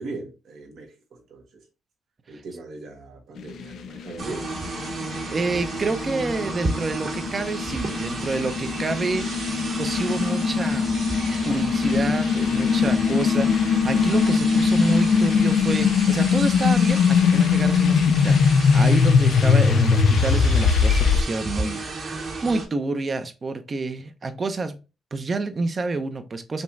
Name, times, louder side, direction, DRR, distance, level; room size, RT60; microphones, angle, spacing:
voice 1, 0.0-1.6 2.3-4.5, right 3 dB, 75° right, 1.3 m, -39 dB
sound 1, 3.4-21.2, left 6 dB, 75° left, 0.5 m, -21 dB
sound 2, 4.2-22.7, right 3 dB, 55° right, 1.8 m, -33 dB
voice 2, 5.3-9.3 9.8-10.9 11.4-24.8 25.1-26.6, right 3 dB, 40° right, 0.7 m, -28 dB
5.2 x 3.0 x 2.6 m
cardioid pair, 85°, 0 cm